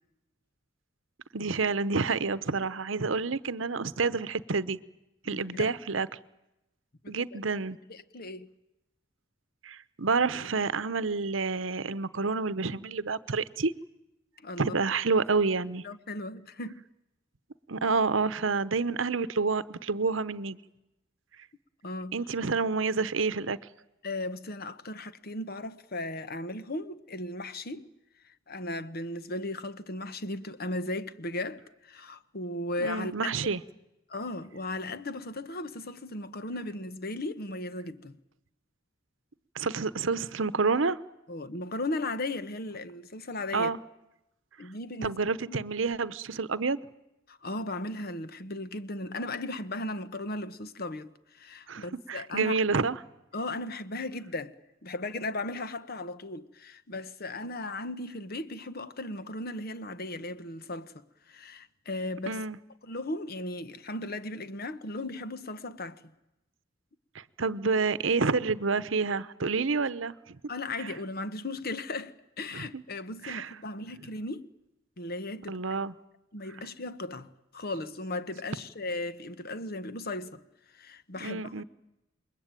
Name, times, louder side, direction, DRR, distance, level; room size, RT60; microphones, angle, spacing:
voice 1, 1.3-4.8 5.2-6.1 7.1-7.8 9.6-13.7 14.6-15.8 17.7-20.6 22.1-23.6 32.8-33.6 39.5-41.0 43.5-43.8 45.0-46.8 51.7-53.0 62.3-62.6 67.1-70.4 70.8-70.9 72.5-72.8 73.2-73.5 75.5-75.9 81.2-81.6, right 4 dB, 75° right, 0.9 m, -28 dB
voice 2, 5.2-5.7 7.0-7.4 7.9-8.5 14.4-14.8 15.8-16.8 21.8-22.2 24.0-27.9 28.2-33.3 34.1-38.2 41.3-43.7 44.6-45.2 45.5-45.6 47.3-52.6 53.3-54.6 54.8-62.4 62.8-66.1 70.5-74.5 75.0-75.6 76.3-80.4 80.7-81.6, left 2 dB, 50° left, 1.2 m, -36 dB
28.0 x 22.0 x 9.1 m
head